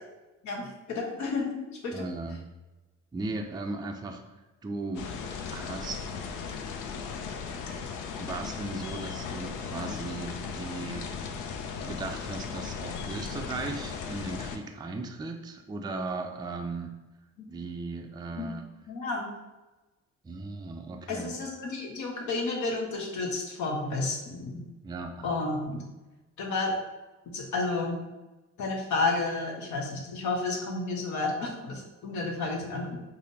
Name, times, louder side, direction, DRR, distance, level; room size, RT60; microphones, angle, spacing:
voice 1, 0.4-2.1 17.4-17.5 18.4-18.5 18.9-19.4 21.1-24.6 25.2-25.8 26.4-26.8 27.3-28.0 28.6-33.0, left 3 dB, 70° left, -1 dB, 0.9 m, -31 dB
voice 2, 1.9-2.5 3.1-4.2 4.6-5.1 5.5-6.0 8.2-11.1 11.8-16.9 17.5-18.6 20.2-21.3 24.8-25.3 32.7-32.8, right 3 dB, 15° right, 4 dB, 0.3 m, -37 dB
sound 1, 5.0-14.6, left 6 dB, 85° left, 0.5 m, -37 dB
4.9 x 2.0 x 2.7 m, 1.1 s
cardioid pair, 90°, 30 cm